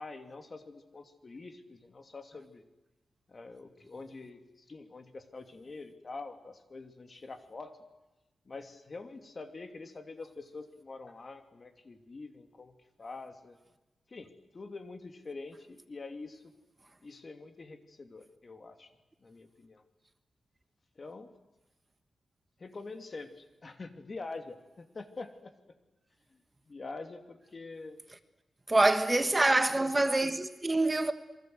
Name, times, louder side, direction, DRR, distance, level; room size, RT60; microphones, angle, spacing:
voice 1, 0.0-2.6 3.3-7.8 8.5-13.6 14.1-16.5 17.0-18.9 19.2-19.8 21.0-21.3 22.6-25.7 26.7-28.0, left 3 dB, 40° left, 2.8 m, -45 dB
voice 2, 28.7-31.1, right 2 dB, 20° right, 1.3 m, -25 dB
28.0 x 23.0 x 8.0 m
wide cardioid pair, 100°, 0 cm